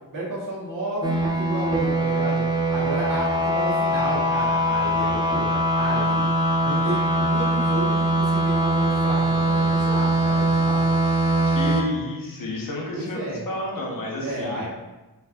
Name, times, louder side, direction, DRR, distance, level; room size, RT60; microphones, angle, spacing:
voice 1, 0.1-2.4 2.7-6.3 6.6-11.0 12.9-13.4 14.2-14.7, right 1 dB, 60° right, -8 dB, 1.2 m, -32 dB
sound 1, 1.0-11.8, right 1 dB, 10° right, 0.3 m, -22 dB
voice 2, 11.4-14.6, left 1 dB, 60° left, -1 dB, 0.8 m, -31 dB
4.3 x 2.5 x 2.5 m, 1.1 s
wide cardioid pair, 145°, 38 cm